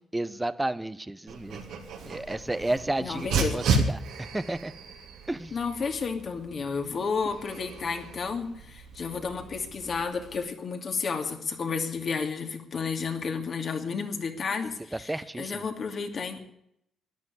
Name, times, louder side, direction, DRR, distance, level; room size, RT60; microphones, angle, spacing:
voice 1, 0.1-4.7 5.3-5.5 15.1-15.7, right 1 dB, 10° right, 15 dB, 1.0 m, -32 dB
Dog, 1.3-10.4, right 3 dB, 80° right, 3.2 m, -34 dB
voice 2, 3.0-3.6 5.5-16.4, left 5 dB, 50° left, 5 dB, 2.7 m, -32 dB
13.5 x 10.5 x 9.8 m, 0.75 s
cardioid pair, 90°, 0 cm